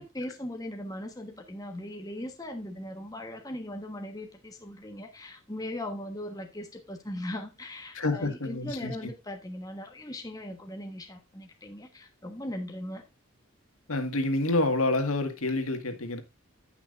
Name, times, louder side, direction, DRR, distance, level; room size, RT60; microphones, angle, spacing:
voice 1, 0.0-13.0, left 1 dB, 15° left, 1.2 m, -39 dB
voice 2, 7.9-9.0 13.9-16.2, left 2 dB, 75° left, 1.8 m, -28 dB
16.5 x 5.9 x 2.5 m
head